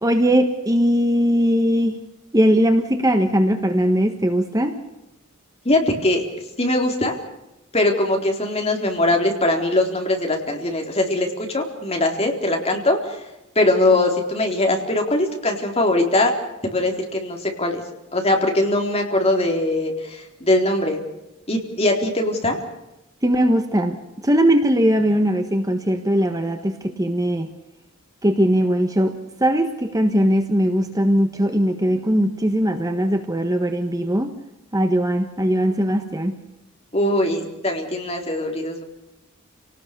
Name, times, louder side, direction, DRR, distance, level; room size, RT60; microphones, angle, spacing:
voice 1, 0.0-2.0 2.3-4.7 23.2-24.0 24.2-27.5 28.2-29.1 29.4-34.3 34.7-36.4, equal, 15° right, 6 dB, 1.4 m, -19 dB
voice 2, 5.6-6.2 6.6-7.2 7.7-13.2 13.6-16.3 16.7-17.8 18.1-21.0 21.5-22.6 36.9-38.8, left 1 dB, 30° left, 2 dB, 4.0 m, -21 dB
29.5 x 19.0 x 6.8 m, 0.92 s
head